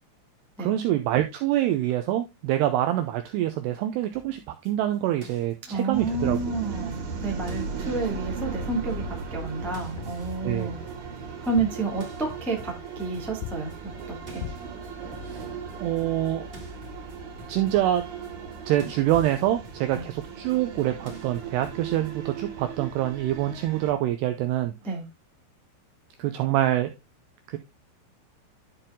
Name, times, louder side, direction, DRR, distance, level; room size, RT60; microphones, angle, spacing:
voice 1, 0.6-6.4 10.4-10.7 15.2-15.5 15.8-16.5 17.5-18.0 18.7-24.7 26.2-26.9 27.5-27.6, right 13 dB, 90° right, 7 dB, 2.4 m, -25 dB
sound 1, 4.1-7.2 7.5-9.5 9.7-11.7 12.0-22.1, left 3 dB, 20° right, 1.3 m, -48 dB
voice 2, 5.7-10.8 11.4-13.7 14.1-14.4 19.9-20.0 24.8-25.0, right 3 dB, ahead, -1 dB, 0.5 m, -30 dB
sound 2, 5.9-23.9, right 5 dB, 55° right, 3.4 m, -37 dB
sound 3, 10.0-10.3 11.4-12.0 13.4-13.8 14.4-14.8 18.8-18.9 19.1-19.5, left 13 dB, 85° left, 2.6 m, -39 dB
12.0 x 4.5 x 3.7 m, 0.23 s
omnidirectional pair, 5.5 m